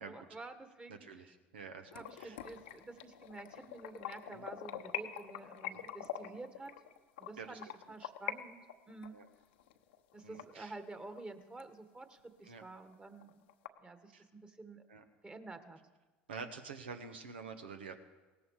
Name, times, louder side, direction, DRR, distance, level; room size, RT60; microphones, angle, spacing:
voice 1, 0.0-1.3 1.9-6.7 7.2-8.6 8.9-9.2 10.1-13.4 13.8-14.8 15.2-15.8, right 3 dB, 20° right, 8 dB, 1.7 m, -50 dB
voice 2, 0.9-1.9 2.2-2.4 4.3-4.4 5.7-5.8 6.2-6.4 7.4-7.6 9.1-9.3 10.2-10.8 12.4-12.6 14.1-14.2 14.9-15.0 16.3-18.0, right 5 dB, 85° right, 7 dB, 1.4 m, -48 dB
sound 1, 1.9-8.4 8.7-11.2 11.6-11.7 12.1-12.2 12.6-12.7 12.9-13.7, left 10 dB, 75° left, 1.0 m, -44 dB
18.0 x 14.0 x 4.9 m, 1.3 s
hypercardioid pair, 75°, 6 cm